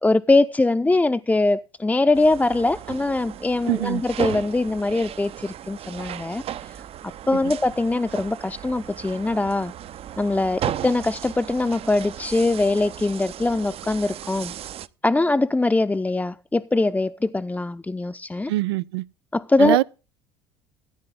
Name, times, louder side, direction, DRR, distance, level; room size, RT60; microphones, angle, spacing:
voice 1, 0.0-6.8 7.3-9.7 10.2-14.5 15.0-18.5 19.3-19.8, left 2 dB, 10° left, 0.7 m, -22 dB
sound 1, 2.1-14.9, right 11 dB, 50° right, 0.8 m, -35 dB
voice 2, 3.7-4.0 7.4-7.5 18.5-19.0 19.6-19.8, right 16 dB, 80° right, 0.6 m, -23 dB
15.0 x 9.5 x 3.8 m
hypercardioid pair, 70°, 13 cm